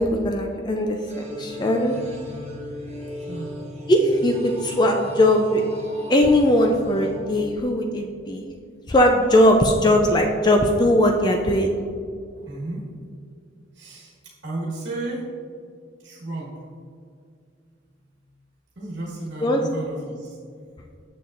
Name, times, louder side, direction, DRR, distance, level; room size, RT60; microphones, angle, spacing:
voice 1, 0.0-2.0 3.9-5.6 6.1-8.5 8.9-11.7 19.4-19.6, left 1 dB, 20° left, 3 dB, 0.3 m, -19 dB
sound 1, 1.1-8.1, left 1 dB, 30° right, 0.9 m, -37 dB
voice 2, 3.2-3.5 12.4-12.8 13.7-15.3 16.0-16.6 17.9-18.2 18.7-20.4, right 2 dB, 65° right, -5 dB, 1.3 m, -33 dB
7.0 x 6.8 x 2.5 m, 2.2 s
head